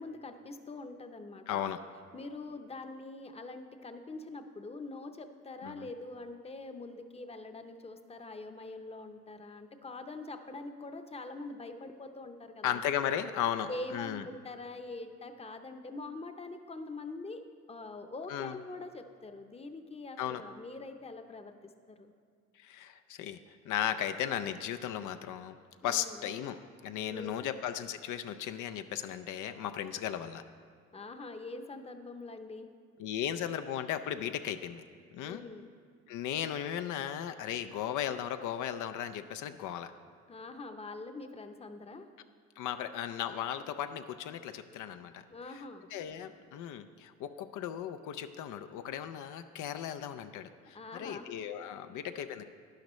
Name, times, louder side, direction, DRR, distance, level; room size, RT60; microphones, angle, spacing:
voice 1, 0.0-1.6 2.1-12.8 13.7-17.4 17.7-22.1 25.8-26.3 27.1-27.5 30.9-32.7 35.2-35.7 40.3-42.1 45.3-45.9 50.7-51.3 51.9-52.0, left 2 dB, 20° left, 7 dB, 0.7 m, -44 dB
voice 2, 1.5-1.8 5.6-5.8 12.6-14.2 18.3-18.6 20.2-20.4 22.6-23.4 23.7-25.6 25.8-26.6 26.8-30.4 33.0-34.8 35.1-35.4 36.1-39.9 42.6-45.2 45.9-52.4, left 10 dB, 80° left, 9 dB, 0.5 m, -36 dB
11.5 x 10.5 x 3.1 m, 2.1 s
cardioid pair, 90°, 30 cm